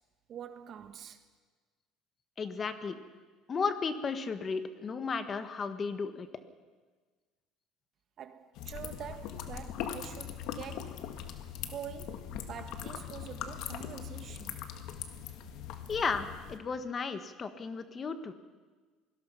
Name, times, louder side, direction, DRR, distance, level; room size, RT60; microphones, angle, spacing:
voice 1, 0.3-1.2 8.2-11.0 11.6-14.6, right 9 dB, 50° right, 1.6 m, -45 dB
voice 2, 2.4-3.0 3.5-6.3 15.9-18.3, left 5 dB, 30° left, 1.5 m, -34 dB
sound 1, 8.6-16.6, left 9 dB, 70° left, 1.8 m, -41 dB
24.5 x 19.0 x 5.8 m
supercardioid pair, 105°, 0 cm